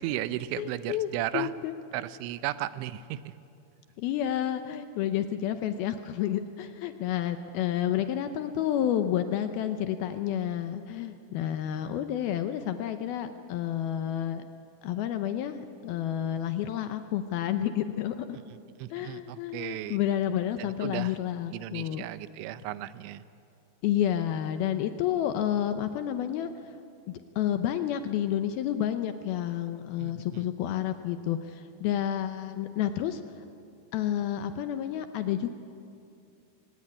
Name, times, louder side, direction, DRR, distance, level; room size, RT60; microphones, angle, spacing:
voice 1, 0.0-1.5 1.9-3.3 18.8-20.0 20.6-21.2 21.5-23.2 30.0-30.5, right 13 dB, 85° right, 14 dB, 3.1 m, -35 dB
voice 2, 0.6-1.8 4.0-14.5 14.8-18.4 18.9-22.1 23.8-26.8 27.1-33.2 33.9-35.5, left 10 dB, 80° left, 9 dB, 2.2 m, -30 dB
25.0 x 19.0 x 9.7 m, 2.6 s
omnidirectional pair, 5.2 m